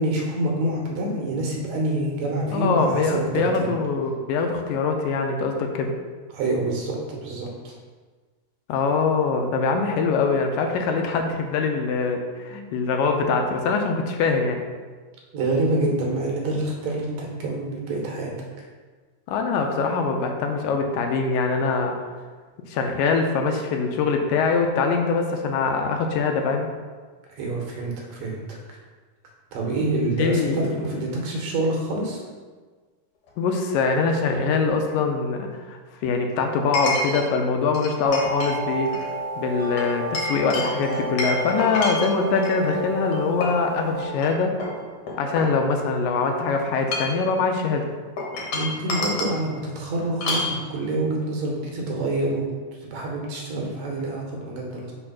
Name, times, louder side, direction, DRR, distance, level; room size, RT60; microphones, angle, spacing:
voice 1, 0.0-3.7 6.3-7.7 12.5-12.7 15.3-18.3 27.3-28.6 29.5-32.2 48.5-52.5 52.8-54.9, right 2 dB, 65° right, -1 dB, 2.1 m, -27 dB
voice 2, 2.5-6.0 8.7-14.6 19.3-22.0 22.6-26.7 30.2-30.8 33.4-38.9 39.4-44.5 45.2-47.9, left 4 dB, 85° left, 4 dB, 2.3 m, -23 dB
Chink clink, 33.3-33.4 36.7-37.3 37.7-38.5 38.9-39.1 39.8-42.6 43.1-43.7 44.2-44.3 44.6-46.0 46.7-47.3 48.2-49.4 50.2-50.5, left 2 dB, 70° left, 2.6 m, -29 dB
sound 1, 38.0-44.0, right 1 dB, 45° right, 0.6 m, -31 dB
5.5 x 4.4 x 5.7 m, 1.4 s
omnidirectional pair, 4.1 m